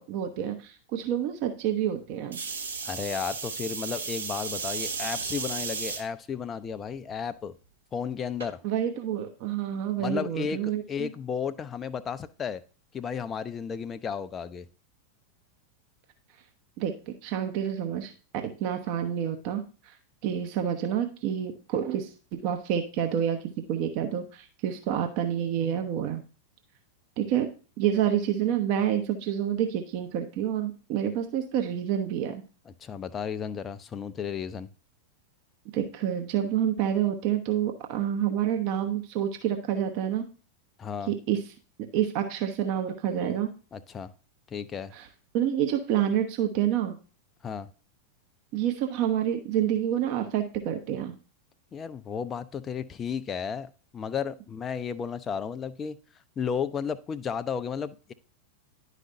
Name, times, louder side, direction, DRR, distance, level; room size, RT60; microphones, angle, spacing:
voice 1, 0.0-2.4 8.6-11.1 16.8-20.0 20.2-26.2 27.2-27.5 27.8-32.4 35.7-40.3 41.1-41.4 41.9-43.5 44.9-45.1 45.3-47.0 48.5-51.1, right 10 dB, 45° right, 6 dB, 0.7 m, -28 dB
sound 1, 2.3-6.0 6.7-7.1 8.4-8.5, right 5 dB, 70° right, 1.0 m, -34 dB
voice 2, 2.8-7.5 7.9-8.6 10.0-12.6 12.9-14.7 32.7-34.7 40.8-41.1 43.7-44.1 44.5-44.9 47.4-47.7 51.7-56.0 56.4-58.1, left 7 dB, 25° left, 11 dB, 0.4 m, -33 dB
10.5 x 5.0 x 2.6 m, 0.36 s
figure-of-eight pair, 90°, 0 cm